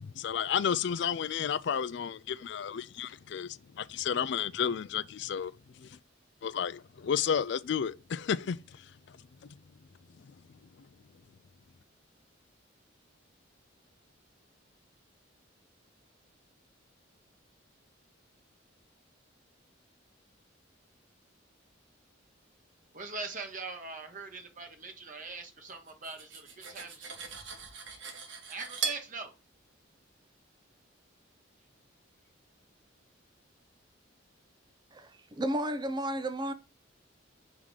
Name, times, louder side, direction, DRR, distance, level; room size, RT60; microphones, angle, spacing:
voice 1, 0.0-5.5 5.8-5.9 6.4-8.6, left 8 dB, 60° left, 0.4 m, -32 dB
voice 2, 22.9-27.2 28.5-29.3, right 3 dB, 40° right, 1.1 m, -42 dB
Cutlery silverware, 25.9-29.1, right 5 dB, 70° right, 1.4 m, -39 dB
voice 3, 34.9-36.5, right 1 dB, 20° right, 0.6 m, -33 dB
5.7 x 3.6 x 4.8 m
head